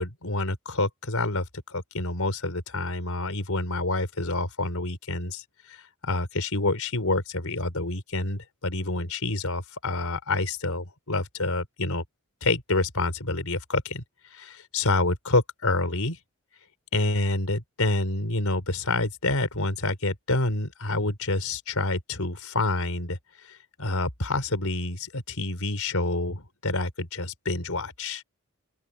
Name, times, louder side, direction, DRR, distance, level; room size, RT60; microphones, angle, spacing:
voice 1, 0.0-5.4 5.7-5.8 6.0-12.0 12.4-14.0 14.3-16.2 16.9-23.2 23.8-28.2, left 2 dB, 85° left, 4.1 m, -27 dB
open air
head